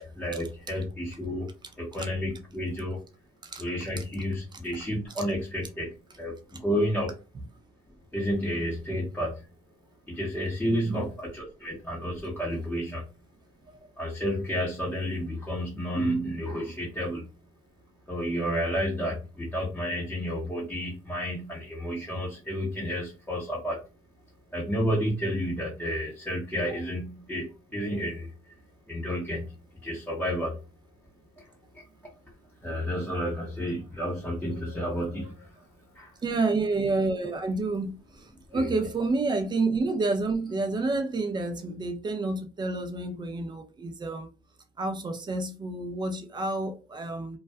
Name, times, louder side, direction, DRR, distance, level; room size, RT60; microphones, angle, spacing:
voice 1, 0.0-1.5 1.8-3.0 3.6-7.1 8.1-9.4 10.1-13.0 14.0-17.3 18.1-23.8 24.5-28.3 28.9-29.4 29.8-30.6 31.4-31.5 31.7-31.8 32.6-35.5 35.9-36.1 38.5-38.7, equal, 10° left, 0.8 m, -31 dB
voice 2, 36.2-44.3 44.8-47.4, right 3 dB, 25° right, 0.5 m, -29 dB
2.3 x 2.2 x 2.5 m
cardioid pair, 110°, 17 cm